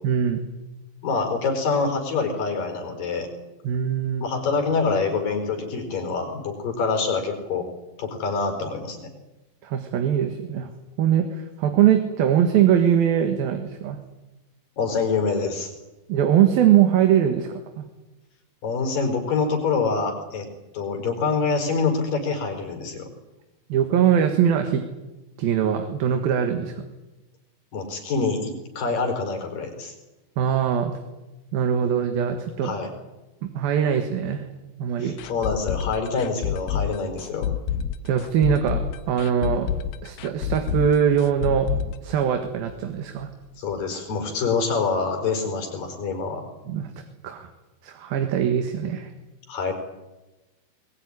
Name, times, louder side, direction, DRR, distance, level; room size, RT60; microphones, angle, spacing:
voice 1, 0.0-0.4 3.7-4.3 9.6-10.7 11.0-14.0 16.1-17.9 23.7-24.8 25.4-26.8 30.4-30.9 31.5-32.7 33.4-34.5 34.8-35.2 38.0-39.7 40.0-41.7 42.0-43.3 46.7-46.9 47.2-47.5 47.8-49.1, right 9 dB, 75° right, 6 dB, 3.4 m, -22 dB
voice 2, 1.0-3.3 4.2-7.6 8.0-9.1 14.8-15.7 18.6-20.5 20.7-23.1 27.7-29.9 32.6-32.9 35.0-37.5 43.6-46.4 49.5-49.7, left 4 dB, 65° left, 4 dB, 6.2 m, -26 dB
sound 1, 35.2-42.9 43.2-43.3 43.7-43.8, left 9 dB, 80° left, 2.9 m, -28 dB
23.0 x 21.0 x 9.8 m, 1.1 s
omnidirectional pair, 4.4 m